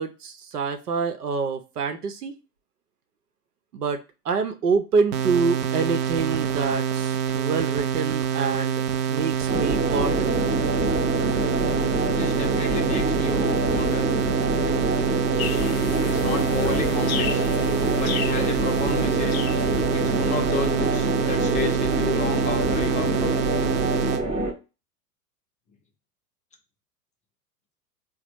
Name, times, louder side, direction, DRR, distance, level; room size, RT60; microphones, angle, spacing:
voice 1, 0.0-2.3 3.7-4.0 4.2-8.8 9.1-10.3, right 5 dB, 75° right, 7 dB, 0.8 m, -26 dB
sound 1, 5.1-24.2, right 8 dB, 40° right, 0.5 m, -26 dB
sound 2, 9.5-24.5, right 1 dB, 15° right, 0.8 m, -26 dB
voice 2, 12.1-14.1 16.0-17.4 18.0-19.4 19.9-23.6, left 4 dB, 15° left, 3 dB, 0.7 m, -32 dB
sound 3, 15.4-20.7, left 9 dB, 65° left, 0.6 m, -35 dB
4.0 x 2.1 x 4.5 m, 0.29 s
figure-of-eight pair, 100°, 47 cm